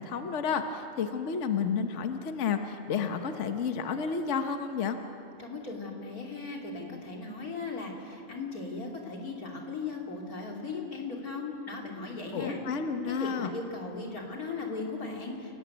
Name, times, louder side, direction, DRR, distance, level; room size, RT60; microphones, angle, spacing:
voice 1, 0.0-5.0 12.3-13.5, left 6 dB, 55° left, 7 dB, 1.3 m, -31 dB
voice 2, 5.4-12.6 13.1-15.5, left 3 dB, 80° left, 0 dB, 3.5 m, -37 dB
29.0 x 18.5 x 8.1 m, 2.9 s
omnidirectional pair, 1.5 m